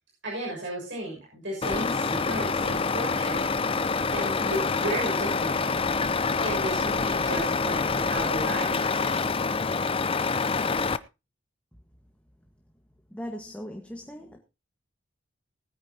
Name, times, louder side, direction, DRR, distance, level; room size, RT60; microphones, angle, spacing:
voice 1, 0.2-3.4 4.1-5.7 6.4-9.3, right 1 dB, 65° right, -3 dB, 6.4 m, -34 dB
Truck, 1.6-11.0, left 4 dB, 30° left, 0.6 m, -26 dB
voice 2, 13.1-14.4, equal, 5° left, 2 dB, 1.6 m, -38 dB
20.5 x 9.7 x 2.9 m, 0.27 s
head